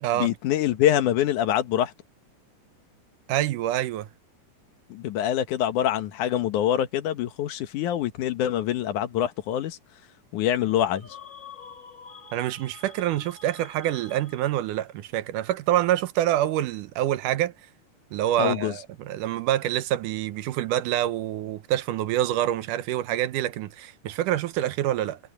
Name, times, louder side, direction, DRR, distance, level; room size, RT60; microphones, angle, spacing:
voice 1, 0.1-1.9 4.9-9.8 10.3-11.1 18.4-18.7, left 11 dB, 75° left, 2.6 m, -25 dB
voice 2, 3.3-4.1 12.3-17.5 18.1-25.2, right 13 dB, 85° right, 2.4 m, -26 dB
sound 1, 10.6-14.8, left 6 dB, 25° left, 2.9 m, -47 dB
omnidirectional pair, 3.6 m